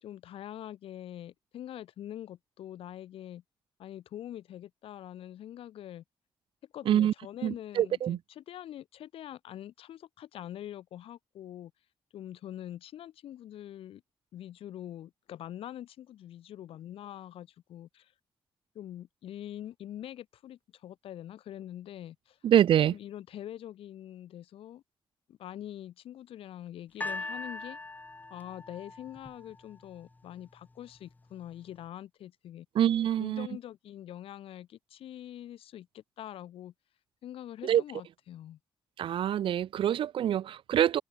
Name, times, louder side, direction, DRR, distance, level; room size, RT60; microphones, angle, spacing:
voice 1, 0.0-3.4 3.8-6.0 6.7-11.7 12.1-14.0 14.3-18.1 18.7-22.4 22.8-24.8 25.3-27.8 28.3-32.7 33.2-36.7 37.2-38.6, left 11 dB, 90° left, 1.5 m, -44 dB
voice 2, 7.4-8.2 22.4-22.9 32.8-33.5 37.6-37.8 39.0-41.0, right 10 dB, 70° right, 0.5 m, -25 dB
sound 1, 27.0-30.2 31.0-31.1, left 2 dB, 20° left, 2.4 m, -41 dB
open air
cardioid pair, 115°, 9 cm